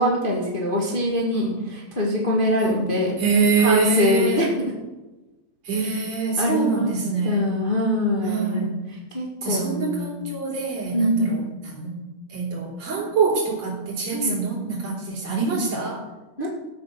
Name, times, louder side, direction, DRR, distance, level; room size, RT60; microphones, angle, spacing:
voice 1, 0.0-3.2 3.6-4.7 5.8-6.0 6.4-7.0 7.2-10.2 10.9-11.4 14.1-14.4 16.4-16.5, left 1 dB, 60° left, -3 dB, 0.5 m, -24 dB
voice 2, 3.2-4.5 5.6-7.5 8.2-8.8 9.4-11.9 12.3-16.0, right 4 dB, 45° right, -3 dB, 4.5 m, -25 dB
13.5 x 8.4 x 6.4 m, 1.1 s
omnidirectional pair, 4.5 m